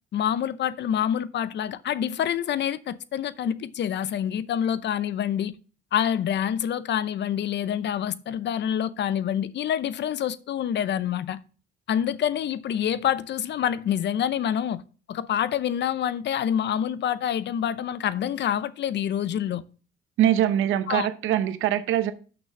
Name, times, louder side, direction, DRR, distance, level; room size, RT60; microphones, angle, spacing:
voice 1, 0.1-5.6 5.9-11.4 11.9-14.8 15.1-19.6 20.9-21.1, left 9 dB, 60° left, 0.7 m, -27 dB
voice 2, 20.2-22.1, right 12 dB, 90° right, 0.8 m, -23 dB
6.2 x 6.1 x 6.5 m
cardioid pair, 90°, 20 cm